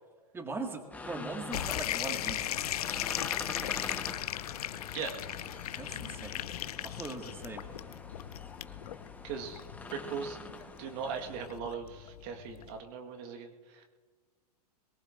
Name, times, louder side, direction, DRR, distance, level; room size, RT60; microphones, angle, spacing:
voice 1, 0.3-2.6 5.8-6.4 6.8-7.6, right 3 dB, 10° right, 3 dB, 1.9 m, -40 dB
sound 1, 0.9-11.4, left 3 dB, 5° left, 1.2 m, -46 dB
sound 2, 1.5-12.8, left 12 dB, 70° left, 0.7 m, -37 dB
voice 2, 9.2-9.6 9.9-10.4 10.8-13.9, right 6 dB, 45° right, 4 dB, 1.6 m, -39 dB
22.5 x 19.0 x 2.6 m, 1.5 s
hypercardioid pair, 110°, 20 cm